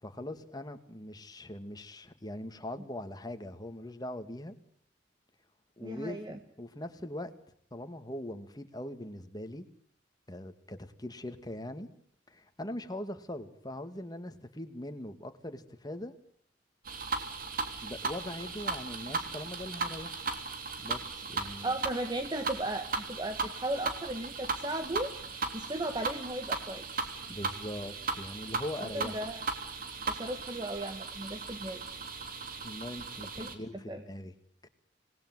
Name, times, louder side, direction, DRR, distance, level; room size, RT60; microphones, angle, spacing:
voice 1, 0.0-4.6 5.8-7.3 7.7-9.7 10.3-11.9 12.3-16.1 17.8-20.2 20.8-21.8 27.3-29.2 32.6-34.3, left 1 dB, 20° left, 2.2 m, -41 dB
voice 2, 5.8-6.4 21.4-25.1 25.5-27.0 28.8-29.5 30.1-31.8 33.4-34.0, right 1 dB, 25° right, 1.6 m, -36 dB
sound 1, 16.8-33.6, right 4 dB, 55° right, 3.3 m, -37 dB
26.5 x 20.0 x 8.1 m
head